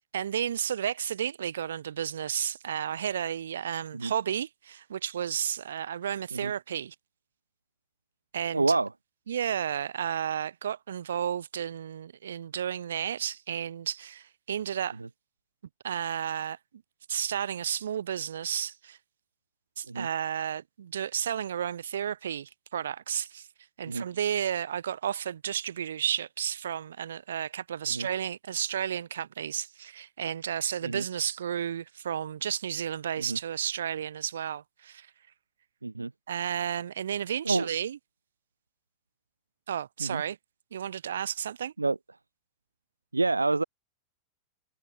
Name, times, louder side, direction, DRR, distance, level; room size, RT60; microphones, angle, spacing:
voice 1, 0.1-6.9 8.3-8.8 9.3-15.0 15.8-16.6 17.1-19.0 19.8-23.5 23.8-35.1 36.3-38.0 39.7-40.4 40.7-41.7, right 9 dB, 65° right, 3.7 m, -32 dB
voice 2, 8.5-8.9 19.9-20.1 23.9-24.0 27.9-28.1 30.8-31.0 33.2-33.4 35.8-36.1 37.4-37.7 40.0-40.2 41.8-42.0 43.1-43.6, right 3 dB, 80° right, 0.7 m, -28 dB
figure-of-eight pair, 90°, 0 cm